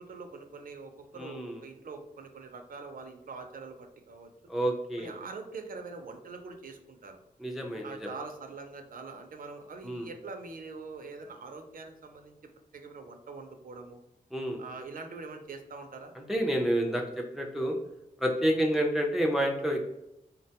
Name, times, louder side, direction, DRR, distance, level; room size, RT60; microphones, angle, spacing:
voice 1, 0.0-4.3 5.0-7.2 7.8-12.4 12.7-14.0 14.6-16.1 18.5-18.6, right 4 dB, 70° right, 5 dB, 0.5 m, -44 dB
voice 2, 1.2-1.6 4.5-5.1 7.4-8.1 9.8-10.1 14.3-14.6 16.3-17.8 18.2-19.9, equal, ahead, 1 dB, 0.4 m, -29 dB
3.6 x 2.2 x 2.7 m, 0.85 s
wide cardioid pair, 100°, 15 cm